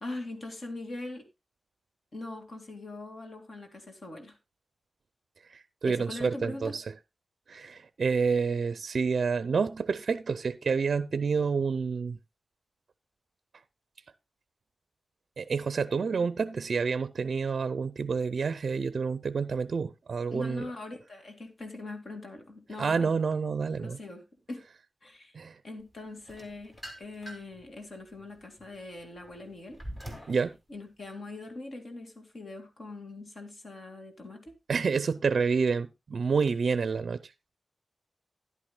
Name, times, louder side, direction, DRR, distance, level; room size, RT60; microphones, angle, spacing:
voice 1, 0.0-1.3 2.1-4.4 5.9-6.7 20.3-23.1 23.8-24.6 25.0-25.3 25.6-29.8 30.2-30.3 30.7-34.5, left 2 dB, 50° left, 2.2 m, -42 dB
voice 2, 5.5-6.8 7.5-12.2 15.4-20.7 22.8-24.0 25.3-25.6 30.3-30.5 34.7-37.3, right 5 dB, 60° right, 0.4 m, -28 dB
sound 1, 26.3-27.6 28.1-30.4, equal, 20° left, 2.5 m, -44 dB
13.0 x 11.0 x 2.2 m
wide cardioid pair, 170°, 0 cm